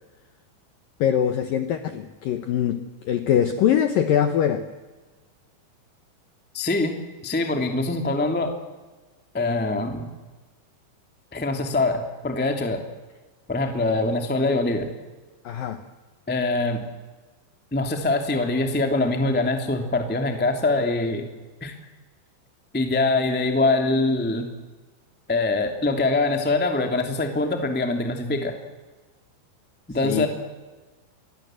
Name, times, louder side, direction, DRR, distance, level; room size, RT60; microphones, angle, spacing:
voice 1, 1.0-4.7 15.4-15.8 30.0-30.3, left 9 dB, 75° left, 9 dB, 2.1 m, -23 dB
voice 2, 6.5-7.0 7.2-8.5 9.3-10.1 11.3-12.8 13.5-14.9 16.3-16.8 17.7-21.3 21.6-21.7 22.7-24.5 25.3-28.5 29.9-30.3, left 2 dB, 5° left, 5 dB, 0.7 m, -23 dB
27.5 x 21.5 x 7.7 m, 1.2 s
omnidirectional pair, 5.5 m